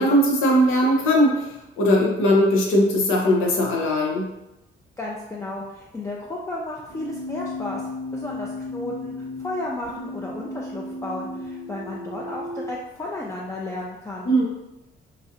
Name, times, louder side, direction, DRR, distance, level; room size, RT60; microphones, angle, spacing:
voice 1, 0.0-1.4 1.8-4.3 14.2-14.4, equal, 85° left, -1 dB, 0.7 m, -19 dB
voice 2, 5.0-7.8 8.1-14.3, left 2 dB, 15° left, -4 dB, 0.4 m, -33 dB
Keyboard (musical), 6.9-12.8, left 2 dB, 40° right, 0.5 m, -35 dB
3.2 x 2.6 x 2.5 m, 0.94 s
cardioid pair, 90°, 20 cm